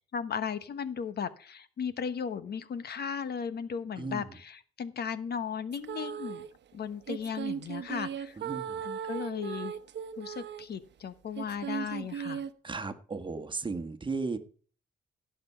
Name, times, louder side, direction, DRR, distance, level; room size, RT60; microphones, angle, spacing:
voice 1, 0.1-6.5 6.7-8.4 8.8-9.8 10.2-12.4, left 7 dB, 55° left, 13 dB, 1.1 m, -36 dB
voice 2, 4.0-4.3 8.4-8.8 12.6-14.4, right 3 dB, 25° right, 8 dB, 1.5 m, -35 dB
sound 1, 5.7-6.5 7.1-10.7 11.4-12.5, right 8 dB, 60° right, 1.0 m, -37 dB
16.0 x 6.1 x 5.6 m, 0.42 s
cardioid pair, 90°, 20 cm